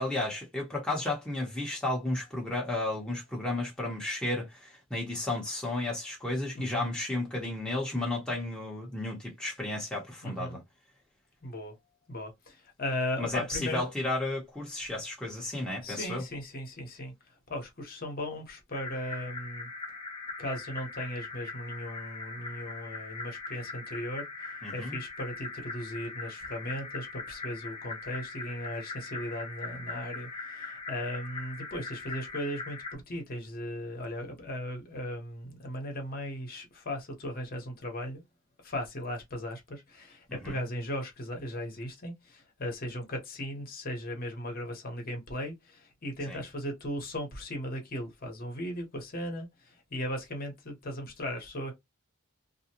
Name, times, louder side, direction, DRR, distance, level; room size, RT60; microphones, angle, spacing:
voice 1, 0.0-10.6 13.2-16.2 24.6-25.0 40.3-40.6 46.3-46.4, left 2 dB, 5° left, 0.8 m, -33 dB
voice 2, 6.6-6.9 10.2-10.6 11.4-11.8 12.1-13.9 15.8-19.7 20.4-38.2 38.6-51.7, left 1 dB, 45° left, 1.0 m, -37 dB
sound 1, 18.7-33.0, left 3 dB, 25° left, 0.5 m, -41 dB
2.5 x 2.2 x 2.8 m
head